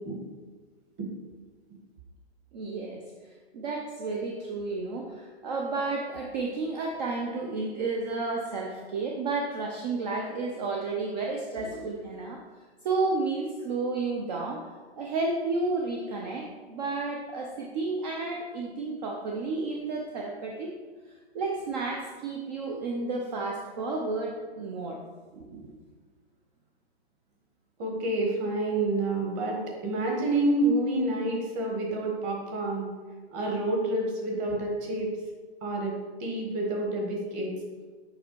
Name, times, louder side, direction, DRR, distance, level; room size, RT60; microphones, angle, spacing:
voice 1, 2.5-3.0 3.5-12.4 12.8-14.7 15.0-20.7 21.3-25.0 25.3-25.7, right 3 dB, 40° right, 0 dB, 0.8 m, -31 dB
voice 2, 27.8-29.6 29.8-32.9 33.3-35.1 35.6-35.9 36.2-37.5, right 2 dB, 20° right, 0 dB, 1.4 m, -28 dB
7.8 x 5.4 x 4.6 m, 1.4 s
hypercardioid pair, 160°, 34 cm